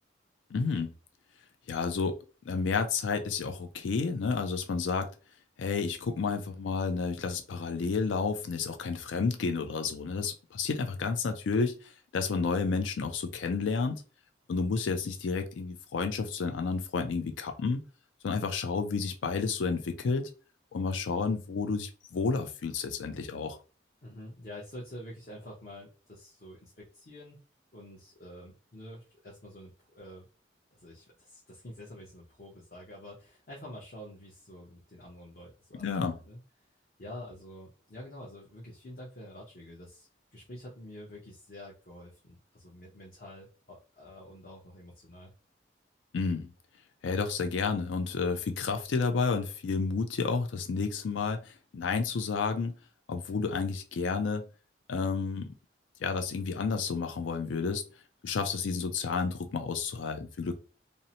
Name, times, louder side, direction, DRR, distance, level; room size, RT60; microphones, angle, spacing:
voice 1, 0.5-0.9 1.7-2.1 2.5-5.1 5.6-14.0 14.5-17.8 18.2-20.3 20.7-23.6 35.7-36.2 46.1-46.5 47.0-52.8 53.1-54.4 54.9-55.5 56.0-57.8 58.2-60.6, left 4 dB, 85° left, 6 dB, 0.4 m, -31 dB
voice 2, 24.0-27.4 27.7-30.3 30.7-35.8 36.2-36.4 37.0-45.3, left 1 dB, 50° left, -4 dB, 0.7 m, -47 dB
2.7 x 2.0 x 2.7 m, 0.33 s
head